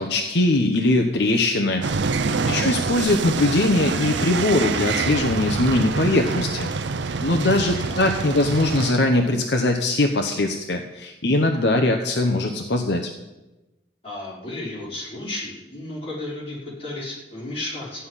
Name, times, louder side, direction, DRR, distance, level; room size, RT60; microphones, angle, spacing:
voice 1, 0.0-1.9 2.5-6.7 7.2-13.1, left 2 dB, 65° left, 4 dB, 1.0 m, -21 dB
sound 1, 1.8-8.9, right 4 dB, 70° right, 0.6 m, -26 dB
voice 2, 2.2-2.8 7.7-8.4 14.0-18.1, left 2 dB, 30° left, -7 dB, 5.2 m, -34 dB
14.5 x 5.7 x 9.9 m, 1.0 s
head